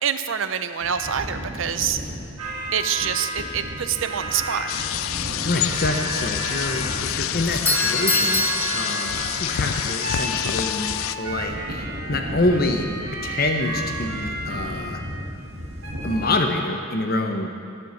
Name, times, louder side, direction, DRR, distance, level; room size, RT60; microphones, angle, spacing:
voice 1, 0.0-2.0 2.7-4.7 8.8-9.0, right 8 dB, 65° right, 10 dB, 0.5 m, -26 dB
sound 1, 0.8-16.3, right 1 dB, 90° right, 1.8 m, -32 dB
sound 2, 4.7-11.2, left 11 dB, 75° left, 0.4 m, -27 dB
voice 2, 5.1-12.9 13.2-15.0 16.0-17.5, left 2 dB, 45° left, 4 dB, 0.9 m, -26 dB
Doorbell, 7.4-9.6, left 2 dB, 10° left, 0.6 m, -25 dB
12.5 x 6.2 x 7.1 m, 2.5 s
head